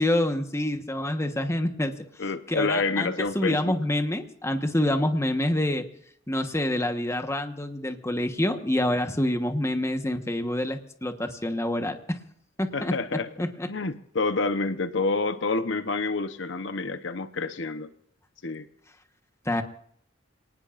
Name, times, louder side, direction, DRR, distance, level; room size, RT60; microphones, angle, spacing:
voice 1, 0.0-2.0 2.5-5.9 6.3-12.2 12.6-13.7 19.4-19.6, left 1 dB, 15° left, 7 dB, 1.2 m, -27 dB
voice 2, 2.2-3.7 12.7-13.3 13.7-17.9 18.4-18.7, left 3 dB, 65° left, 10 dB, 0.9 m, -28 dB
28.0 x 19.0 x 2.5 m, 0.66 s
head